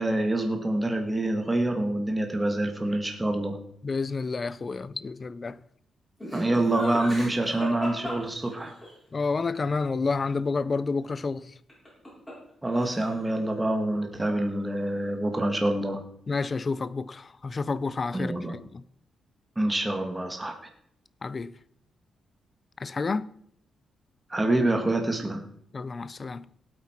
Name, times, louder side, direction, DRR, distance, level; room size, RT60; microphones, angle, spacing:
voice 1, 0.0-3.6 6.3-8.7 12.6-16.0 18.1-18.5 19.5-20.5 24.3-25.4, right 1 dB, 10° right, 1.5 m, -26 dB
voice 2, 3.8-5.6 9.1-11.5 16.3-18.3 18.7-18.8 21.2-21.5 22.8-23.3 25.7-26.4, left 4 dB, 25° left, 0.4 m, -29 dB
Laughter, 6.2-8.9 11.7-12.5 12.8-13.3, equal, 10° left, 6.8 m, -37 dB
18.0 x 8.4 x 4.4 m
wide cardioid pair, 165°, 0 cm